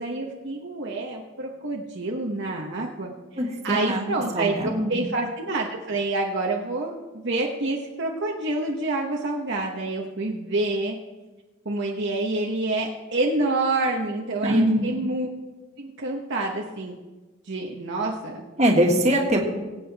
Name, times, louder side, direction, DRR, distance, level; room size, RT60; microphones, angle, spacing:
voice 1, 0.0-11.0 11.6-15.3 15.8-16.9 17.5-18.5, right 2 dB, 55° right, -1 dB, 1.1 m, -28 dB
voice 2, 3.4-4.1 4.3-4.9 14.4-15.0 18.6-19.4, right 1 dB, 30° right, 0 dB, 1.8 m, -22 dB
22.5 x 8.5 x 3.5 m, 1.2 s
head